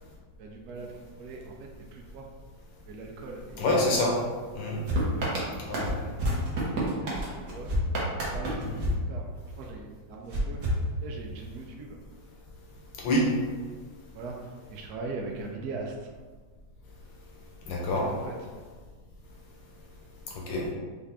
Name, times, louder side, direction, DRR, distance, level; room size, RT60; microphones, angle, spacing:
voice 1, 0.4-2.3 2.9-3.6 4.2-4.3 5.2-5.4 5.8-7.7 8.3-9.3 9.6-10.6 11.0-12.0 14.1-16.1 18.0-18.3 20.6-20.7, right 3 dB, 70° right, 0 dB, 0.9 m, -41 dB
voice 2, 3.6-4.2 4.5-4.8 5.6-5.9 8.7-8.8 13.0-13.3 17.7-18.1 20.5-20.7, left 1 dB, 75° left, -2 dB, 1.6 m, -26 dB
sound 1, 4.9-9.7 10.3-11.5, right 1 dB, 55° right, 1.4 m, -30 dB
5.5 x 2.5 x 3.5 m, 1.5 s
omnidirectional pair, 2.1 m